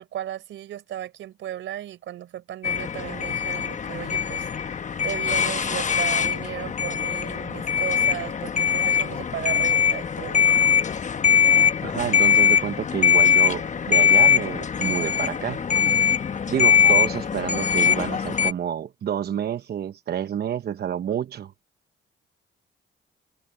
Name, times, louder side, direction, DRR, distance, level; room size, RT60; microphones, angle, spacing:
voice 1, 0.0-4.5 5.0-10.4, right 12 dB, 75° right, 4.2 m, -35 dB
sound 1, 2.6-18.5, left 7 dB, 40° left, 1.1 m, -21 dB
voice 2, 11.8-16.0 16.5-21.5, right 9 dB, 55° right, 0.9 m, -29 dB
cardioid pair, 90°, 20 cm